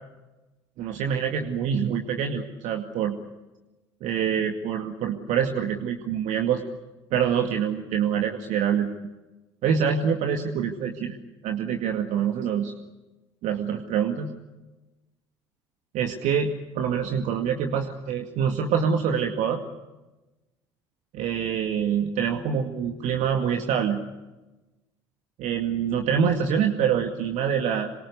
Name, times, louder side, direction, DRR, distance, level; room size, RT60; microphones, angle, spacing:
voice 1, 0.8-3.1 4.0-6.6 7.1-8.9 9.6-11.2 11.4-12.7 13.4-14.3 15.9-19.6 21.1-24.0 25.4-27.9, right 7 dB, 55° right, 5 dB, 2.2 m, -25 dB
27.0 x 24.5 x 8.4 m, 1.1 s
hypercardioid pair, 60°, 14 cm